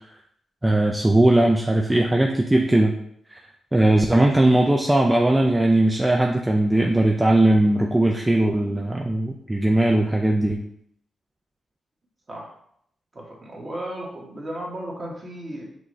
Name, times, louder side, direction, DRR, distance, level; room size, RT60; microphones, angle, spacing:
voice 1, 0.6-2.9 3.3-3.4 3.7-10.6, right 1 dB, 15° right, 0 dB, 0.5 m, -19 dB
voice 2, 13.1-15.6, right 1 dB, 40° right, -2 dB, 1.6 m, -34 dB
6.0 x 2.5 x 3.2 m, 0.69 s
supercardioid pair, 45°, 0 cm